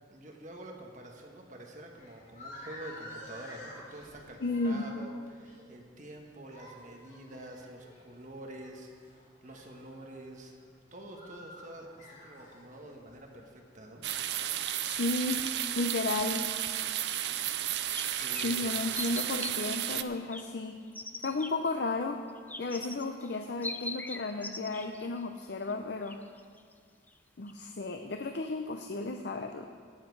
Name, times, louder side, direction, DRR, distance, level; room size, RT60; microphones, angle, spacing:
voice 1, 0.1-10.6 10.9-14.0 18.0-18.7, right 1 dB, 40° right, 1 dB, 1.3 m, -47 dB
sound 1, 1.8-14.0, left 1 dB, 40° left, 2.8 m, -51 dB
voice 2, 4.4-4.9 14.9-16.5 18.3-20.8 21.2-22.2 22.6-26.2 27.4-29.7, left 3 dB, 60° left, 6 dB, 0.6 m, -33 dB
sound 2, 14.0-20.0, right 11 dB, 60° right, 0.5 m, -33 dB
sound 3, 17.1-17.2 17.7-18.6 18.9-19.5 19.9-20.4 20.9-21.5 22.3-25.2 25.7-25.8 26.1-26.7 27.1-27.2 27.5-27.6, left 2 dB, 10° left, 0.4 m, -41 dB
18.0 x 7.4 x 4.7 m, 2.1 s
head